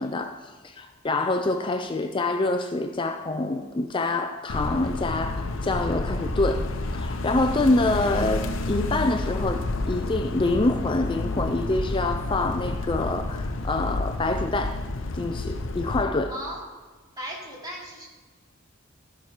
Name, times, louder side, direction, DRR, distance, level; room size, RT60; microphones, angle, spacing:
voice 1, 0.0-6.6 6.9-14.8 15.1-16.3, left 2 dB, 25° left, 6 dB, 0.5 m, -26 dB
sound 1, 4.5-16.0, left 2 dB, 70° left, 0.8 m, -30 dB
voice 2, 16.3-16.6 17.2-18.1, equal, 20° right, -4 dB, 2.7 m, -36 dB
14.0 x 6.0 x 4.9 m, 1.3 s
head